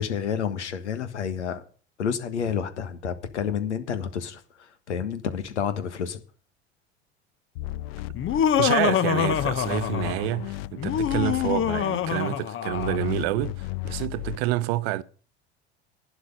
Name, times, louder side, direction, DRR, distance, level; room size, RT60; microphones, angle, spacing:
voice 1, 0.0-1.6 2.0-6.2, left 7 dB, 80° left, 1.5 m, -29 dB
sound 1, 7.6-9.0 9.3-12.1 12.7-14.4, left 17 dB, 60° left, 0.5 m, -34 dB
Laughter, 8.2-10.3 10.8-13.1, left 9 dB, 35° left, 0.9 m, -25 dB
voice 2, 8.6-15.0, right 15 dB, 60° right, 0.8 m, -28 dB
11.5 x 9.8 x 5.4 m
hypercardioid pair, 70°, 34 cm